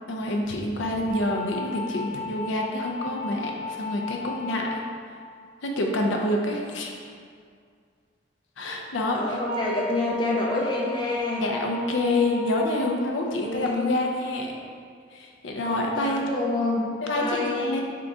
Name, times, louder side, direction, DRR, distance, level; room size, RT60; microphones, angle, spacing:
voice 1, 0.1-4.8 5.6-7.0 8.6-9.4 11.4-14.6 15.1-16.3 17.0-17.8, left 1 dB, 75° left, 1 dB, 0.5 m, -27 dB
sound 1, 1.1-4.9 9.5-12.9, left 4 dB, 40° right, 0.4 m, -35 dB
voice 2, 9.1-11.5 13.3-13.9 15.7-17.8, left 2 dB, 25° left, -3 dB, 0.4 m, -28 dB
3.7 x 3.5 x 3.8 m, 2.1 s
head